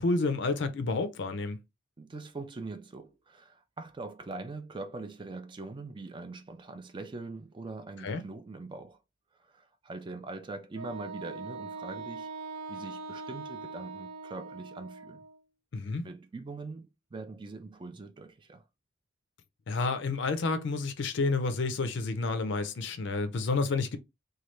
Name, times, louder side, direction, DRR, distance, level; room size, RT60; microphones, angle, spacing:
voice 1, 0.0-1.6 8.0-8.2 15.7-16.1 19.7-24.0, left 3 dB, 55° left, 0.5 m, -30 dB
voice 2, 2.0-9.0 9.3-12.3 12.7-15.2 16.0-18.6, right 3 dB, 25° right, 0.3 m, -42 dB
Wind instrument woodwind instrument, 10.7-15.4, right 3 dB, 65° right, 0.8 m, -42 dB
3.1 x 2.3 x 3.0 m
head